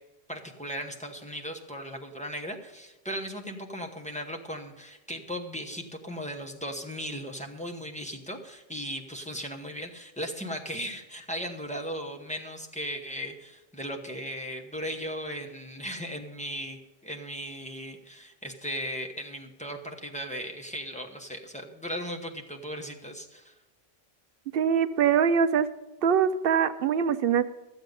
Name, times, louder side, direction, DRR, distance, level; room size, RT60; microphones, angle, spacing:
voice 1, 0.3-23.5, equal, 5° left, 3 dB, 0.9 m, -37 dB
voice 2, 24.5-25.7 26.0-27.4, right 7 dB, 65° right, 13 dB, 0.7 m, -23 dB
13.5 x 8.0 x 5.3 m, 1.1 s
omnidirectional pair, 1.1 m